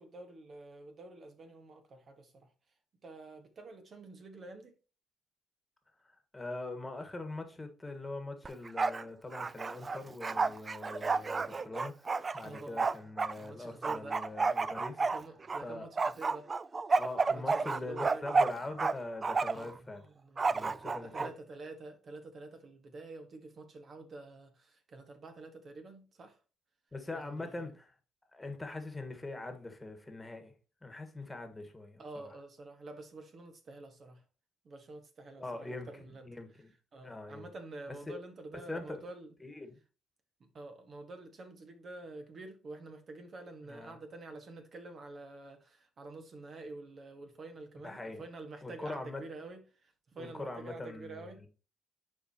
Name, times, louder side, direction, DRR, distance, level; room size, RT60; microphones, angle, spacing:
voice 1, 0.0-2.5 3.0-4.7 12.4-12.8 13.4-14.2 15.0-16.5 17.3-18.6 19.5-26.4 27.1-27.7 32.0-34.2 34.6-36.3 36.9-39.3 40.4-51.5, right 2 dB, 50° right, 1.5 m, -48 dB
voice 2, 6.0-15.0 15.6-15.9 16.9-20.0 20.5-21.3 26.9-27.9 28.3-30.5 30.8-32.3 35.4-36.7 37.0-37.5 37.9-38.0 38.7-39.0 39.4-39.8 43.7-44.0 47.8-48.2 48.6-49.2 50.2-51.5, left 2 dB, 15° left, 1.6 m, -43 dB
Bark, 8.5-9.0 9.3-13.3 13.8-15.6 16.0-18.9 19.2-19.7 20.4-21.3, right 4 dB, 35° right, 0.4 m, -31 dB
10.5 x 4.8 x 2.9 m
cardioid pair, 90°, 0 cm